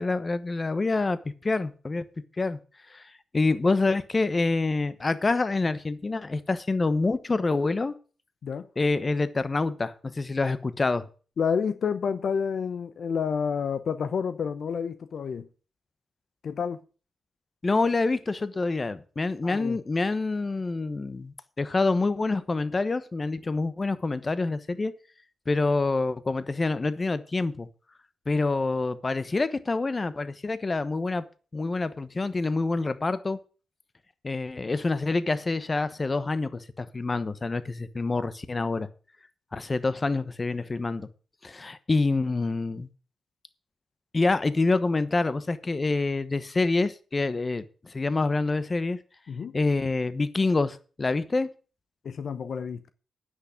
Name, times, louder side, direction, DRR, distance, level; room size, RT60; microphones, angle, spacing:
voice 1, 0.0-2.0 2.4-2.6 2.9-3.0 3.3-7.9 8.8-11.0 17.6-24.9 25.5-27.7 28.3-31.2 31.5-33.4 34.2-38.9 39.5-41.1 41.4-42.9 44.1-49.0 49.5-51.5, left 3 dB, 35° left, 1.1 m, -27 dB
voice 2, 11.4-15.5 16.4-16.8 19.4-19.8 49.3-49.6 52.0-52.9, left 6 dB, 70° left, 0.8 m, -29 dB
9.7 x 6.3 x 8.3 m
cardioid pair, 60°, 0 cm